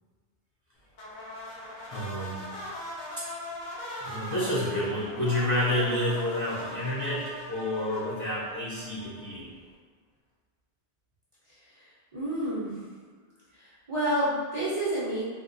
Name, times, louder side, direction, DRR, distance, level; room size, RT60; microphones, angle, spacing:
sound 1, 0.9-9.4, left 1 dB, 55° left, 0.7 m, -40 dB
voice 1, 1.9-2.5 4.0-9.5, left 1 dB, 20° left, -9 dB, 0.6 m, -29 dB
voice 2, 11.5-12.9 13.5-15.2, right 1 dB, 35° right, -10 dB, 0.6 m, -30 dB
3.5 x 2.2 x 2.6 m, 1.5 s
omnidirectional pair, 1.0 m